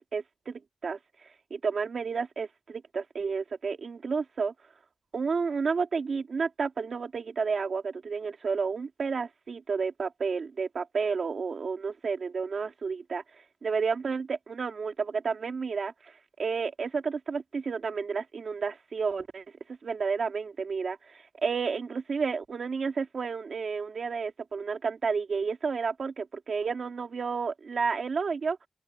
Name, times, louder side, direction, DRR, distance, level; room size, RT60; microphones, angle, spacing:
voice 1, 0.1-4.5 5.1-19.4 19.8-28.6, right 5 dB, 80° right, 2.3 m, -31 dB
open air
wide cardioid pair, 80°, 0 cm